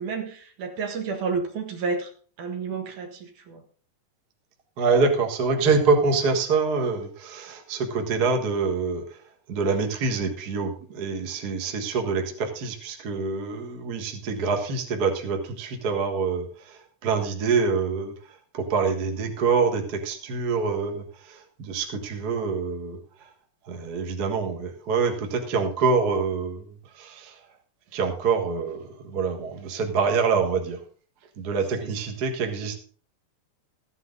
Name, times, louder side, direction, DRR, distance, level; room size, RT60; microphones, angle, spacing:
voice 1, 0.0-2.1 2.4-3.6 31.8-31.9, right 5 dB, 70° right, 5 dB, 3.0 m, -30 dB
voice 2, 4.8-9.0 9.5-18.1 18.5-23.0 23.7-26.7 27.0-27.4 27.9-30.8 31.4-32.8, right 4 dB, 40° right, 4 dB, 1.5 m, -25 dB
14.0 x 9.7 x 3.9 m, 0.43 s
omnidirectional pair, 3.7 m